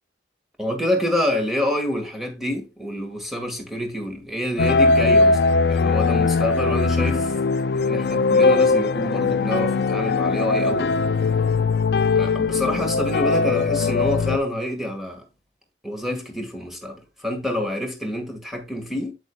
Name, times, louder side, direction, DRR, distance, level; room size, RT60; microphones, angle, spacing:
voice 1, 0.6-5.4 5.7-7.4 7.7-10.9 12.2-15.2 15.8-19.1, left 1 dB, ahead, 1.8 m, -27 dB
sound 1, 4.6-14.4, left 4 dB, 65° left, 0.4 m, -20 dB
8.4 x 7.9 x 2.3 m
head